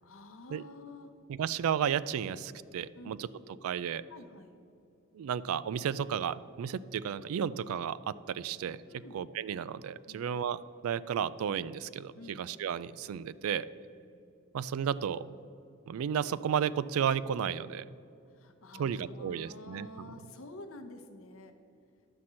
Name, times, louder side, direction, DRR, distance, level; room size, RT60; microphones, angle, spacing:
voice 1, 0.0-1.1 2.9-3.2 4.1-4.5 8.9-9.3 10.1-10.3 12.1-12.6 14.0-14.2 18.3-21.5, left 2 dB, 70° left, 6 dB, 0.8 m, -49 dB
voice 2, 1.3-3.3 3.6-4.0 5.1-8.8 9.1-13.7 14.5-15.3 15.9-17.8 18.8-19.9, right 8 dB, 80° right, 18 dB, 0.3 m, -33 dB
11.0 x 4.3 x 7.4 m, 2.6 s
head